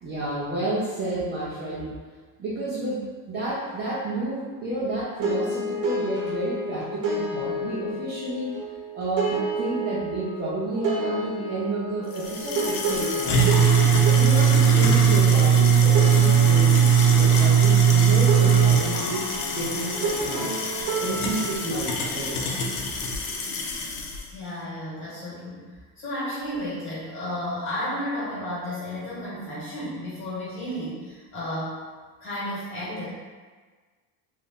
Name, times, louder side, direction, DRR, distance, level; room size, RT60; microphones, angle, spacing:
voice 1, 0.0-1.9 2.4-8.5 8.9-13.7 14.1-19.2 19.5-20.5 21.0-22.6, right 2 dB, 25° right, -9 dB, 0.4 m, -30 dB
sound 1, 5.2-21.6, right 1 dB, 80° right, 0.8 m, -31 dB
sound 2, 12.2-24.2, right 6 dB, 75° left, 0.6 m, -20 dB
voice 2, 24.3-25.6 26.0-31.8 32.2-33.1, left 1 dB, 30° left, -8 dB, 1.2 m, -32 dB
2.6 x 2.4 x 3.5 m, 1.4 s
cardioid pair, 170°, 42 cm